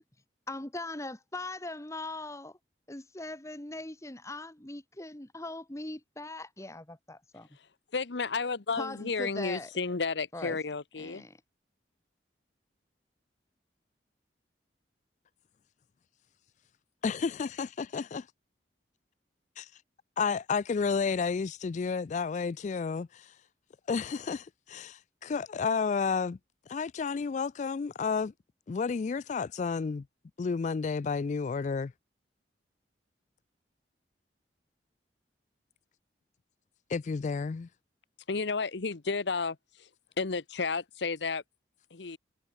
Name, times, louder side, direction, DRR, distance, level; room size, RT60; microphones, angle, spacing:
voice 1, 0.5-2.6 2.9-7.5 8.8-9.7 10.3-10.6 11.0-11.4, left 2 dB, 15° left, 1.5 m, -40 dB
voice 2, 7.5-11.3 38.3-39.9 40.2-41.4 41.9-42.2, left 4 dB, 75° left, 0.9 m, -32 dB
voice 3, 17.0-18.3 19.6-19.7 20.2-23.3 23.9-26.4 26.7-28.3 28.7-30.1 30.4-31.9 36.9-37.7, left 5 dB, 40° left, 0.3 m, -31 dB
head